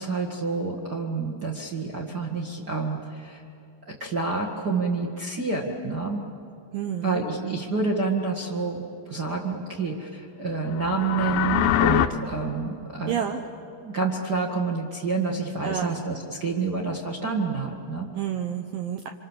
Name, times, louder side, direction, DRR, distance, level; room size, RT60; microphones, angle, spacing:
voice 1, 0.0-3.4 4.0-6.2 7.0-13.2 13.7-18.1, right 4 dB, 55° right, 0 dB, 1.1 m, -28 dB
voice 2, 6.7-7.6 13.1-13.4 15.6-16.0 18.1-19.1, right 9 dB, 80° right, 5 dB, 2.0 m, -30 dB
sound 1, 10.7-12.1, left 11 dB, 85° left, 2.0 m, -23 dB
26.5 x 26.0 x 7.3 m, 2.5 s
omnidirectional pair, 5.1 m